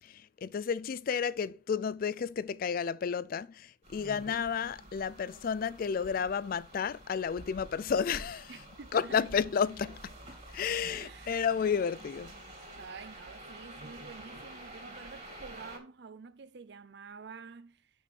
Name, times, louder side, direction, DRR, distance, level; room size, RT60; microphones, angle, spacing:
voice 1, 0.0-8.5 8.9-10.1 10.5-12.3, left 6 dB, 45° left, 0.3 m, -32 dB
sound 1, 3.8-15.8, right 1 dB, 35° right, 2.4 m, -49 dB
voice 2, 8.5-9.4 11.0-11.4 12.8-17.9, right 5 dB, 55° right, 0.5 m, -49 dB
6.0 x 6.0 x 6.0 m
head